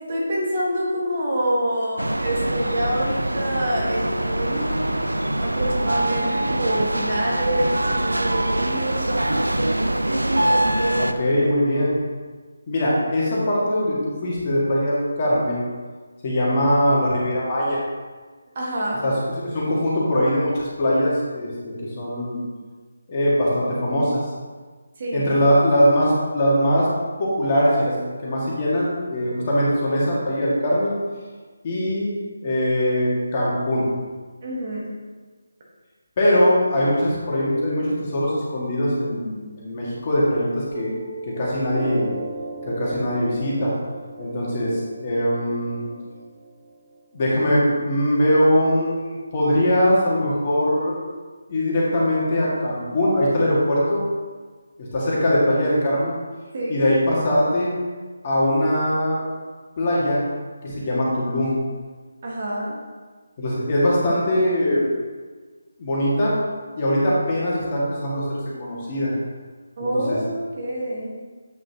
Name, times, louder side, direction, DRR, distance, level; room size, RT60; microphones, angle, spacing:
voice 1, 0.1-5.0 5.4-9.0 18.5-19.0 25.0-25.4 34.4-34.9 56.5-56.9 62.2-62.8 69.8-71.1, right 1 dB, 40° right, -4 dB, 1.7 m, -26 dB
sound 1, 2.0-11.1, right 1 dB, 80° right, 0.5 m, -23 dB
voice 2, 10.9-11.9 12.7-15.7 16.2-17.8 19.0-21.5 21.8-22.4 23.1-24.2 25.1-26.9 27.2-31.0 31.6-32.1 32.4-33.9 36.2-40.9 41.3-42.1 42.7-43.7 44.2-45.8 47.1-51.0 51.5-54.0 54.8-56.2 56.7-57.7 58.2-59.2 59.8-60.2 60.6-61.6 63.4-64.8 65.8-66.4 66.8-69.1 69.8-70.2, equal, 30° left, -6 dB, 2.0 m, -21 dB
Piano, 40.7-47.8, right 3 dB, 25° right, 0.5 m, -37 dB
8.3 x 6.1 x 3.0 m, 1.4 s
figure-of-eight pair, 155°, 0 cm